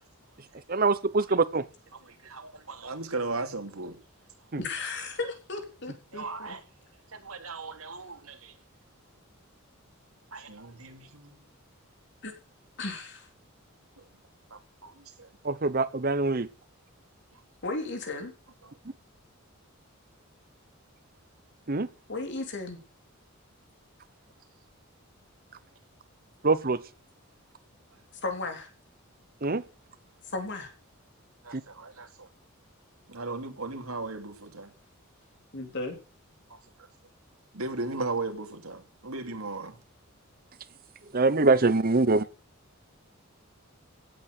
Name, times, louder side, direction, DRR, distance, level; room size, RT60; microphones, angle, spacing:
voice 1, 0.7-1.6 4.5-4.6 15.4-16.5 21.7-21.9 26.4-26.8 29.4-29.6 31.5-31.6 41.1-42.3, right 3 dB, 45° right, 15 dB, 1.0 m, -24 dB
voice 2, 2.0-4.0 6.1-6.6 7.1-8.5 10.3-11.4 14.5-15.3 31.4-32.3 33.1-34.7 36.5-36.6 37.5-39.8, right 3 dB, 90° right, 6 dB, 2.9 m, -37 dB
voice 3, 4.6-6.6 12.2-12.3 12.8-13.3 17.6-18.3 22.1-22.8 28.2-28.7 30.3-30.7 35.5-36.0, left 3 dB, 55° left, 5 dB, 3.9 m, -35 dB
17.0 x 8.8 x 6.7 m, 0.35 s
head